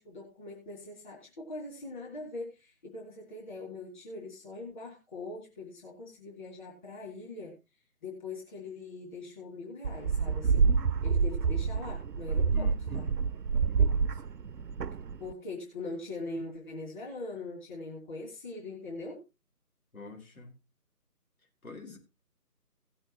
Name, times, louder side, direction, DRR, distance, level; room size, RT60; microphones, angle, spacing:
voice 1, 0.0-7.6 8.0-10.7 11.0-13.1 15.2-19.2, left 2 dB, 30° left, 3.4 m, -42 dB
sound 1, 9.8-15.3, right 5 dB, 85° right, 0.7 m, -28 dB
voice 2, 12.5-13.2 19.9-20.5 21.6-22.0, left 4 dB, 60° left, 4.7 m, -45 dB
18.0 x 7.8 x 3.0 m
figure-of-eight pair, 160°, 47 cm